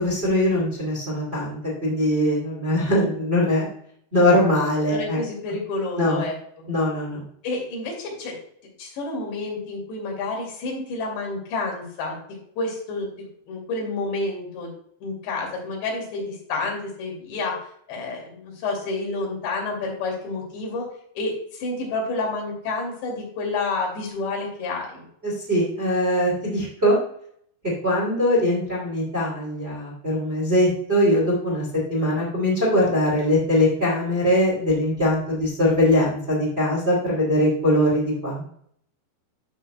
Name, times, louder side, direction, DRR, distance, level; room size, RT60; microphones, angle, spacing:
voice 1, 0.0-3.7 4.1-5.2 6.0-6.2 6.7-7.2 25.2-27.0 27.8-38.4, left 1 dB, 20° right, -4 dB, 2.1 m, -21 dB
voice 2, 4.9-6.7 7.4-8.4 8.8-12.2 12.6-13.1 13.5-14.7 15.0-17.6 17.9-20.9 21.2-25.1, left 3 dB, 80° left, -1 dB, 4.7 m, -29 dB
12.0 x 6.9 x 2.2 m, 0.66 s
omnidirectional pair, 5.0 m